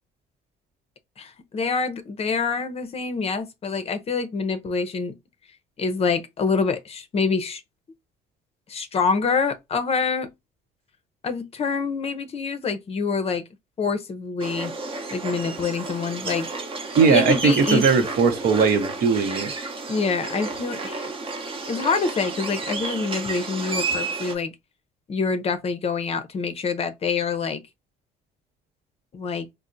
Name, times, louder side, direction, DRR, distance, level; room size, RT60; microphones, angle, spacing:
voice 1, 1.2-5.1 5.8-7.6 8.7-10.3 11.2-13.4 13.8-14.7 15.1-16.5 17.1-17.9 19.9-21.1 21.6-24.5 25.1-27.6 29.1-29.5, left 5 dB, 35° left, 0.6 m, -26 dB
sound 1, 14.4-24.4, right 3 dB, 35° right, 0.7 m, -31 dB
voice 2, 16.9-19.5, right 5 dB, 65° right, 0.8 m, -19 dB
4.2 x 2.1 x 2.5 m
cardioid pair, 110°, 17 cm